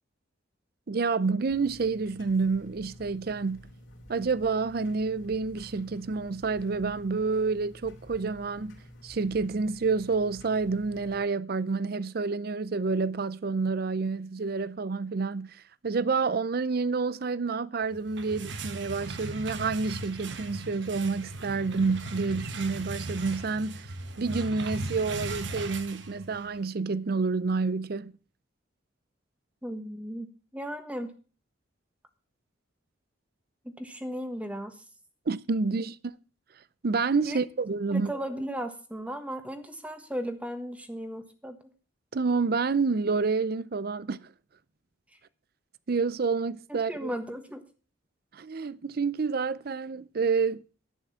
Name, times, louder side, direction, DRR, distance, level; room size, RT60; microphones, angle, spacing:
voice 1, 0.9-3.7 4.1-8.8 9.0-28.1 35.3-36.0 36.8-38.1 42.1-44.3 45.9-47.1 48.3-50.6, right 4 dB, 50° right, 0.5 m, -29 dB
sound 1, 1.5-11.2, equal, 75° left, 2.9 m, -50 dB
sound 2, 17.9-26.6, right 2 dB, 65° right, 1.1 m, -38 dB
voice 2, 29.6-30.3 30.5-31.1 33.8-34.8 35.7-35.8 37.2-37.4 37.9-41.6 46.7-47.6, equal, 5° right, 1.3 m, -36 dB
11.0 x 9.1 x 5.6 m
head